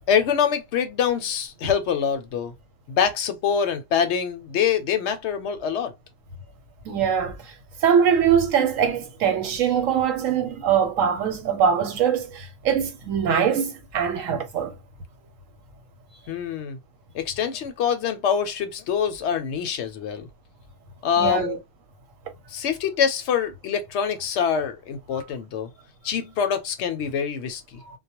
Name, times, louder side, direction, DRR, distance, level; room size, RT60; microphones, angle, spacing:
voice 1, 0.1-2.5 2.9-5.9 16.3-16.8 17.1-20.3 21.0-21.6 22.5-25.7 26.0-27.8, left 7 dB, 65° left, 0.8 m, -25 dB
voice 2, 6.8-7.5 7.8-14.8 21.2-21.6, right 7 dB, 90° right, 1.1 m, -22 dB
2.3 x 2.1 x 2.9 m
omnidirectional pair, 1.3 m